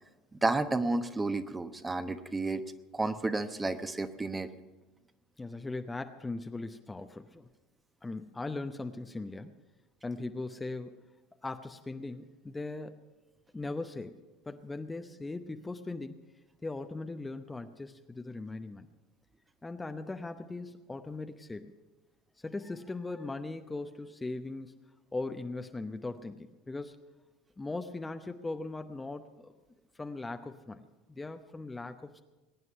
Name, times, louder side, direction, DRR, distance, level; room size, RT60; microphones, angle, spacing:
voice 1, 0.3-2.6 2.9-4.5, right 2 dB, 15° right, 9 dB, 1.0 m, -31 dB
voice 2, 5.4-7.5 8.0-9.5 10.0-11.1 11.4-13.0 13.5-16.2 16.6-18.9 19.6-21.7 22.4-24.7 25.1-27.1 27.6-29.5 29.9-32.2, left 3 dB, 15° left, 7 dB, 0.8 m, -39 dB
21.5 x 9.5 x 5.6 m, 1.2 s
hypercardioid pair, 75°, 0 cm